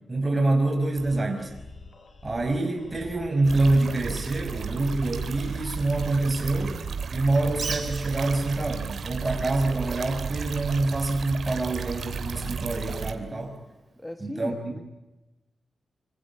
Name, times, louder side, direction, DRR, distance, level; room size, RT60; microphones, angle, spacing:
voice 1, 0.1-1.5 2.2-6.8 7.1-13.6 14.2-14.8, right 2 dB, 20° right, 5 dB, 5.6 m, -26 dB
sound 1, 0.9-7.0, left 3 dB, 45° left, 4.8 m, -46 dB
sound 2, 3.4-13.1, right 6 dB, 60° right, 2.9 m, -34 dB
Bird, 7.5-14.1, right 4 dB, 40° right, 3.6 m, -43 dB
voice 2, 14.0-14.9, left 1 dB, 10° left, 8 dB, 1.4 m, -37 dB
26.0 x 26.0 x 8.5 m, 1.0 s
wide cardioid pair, 140°, 0 cm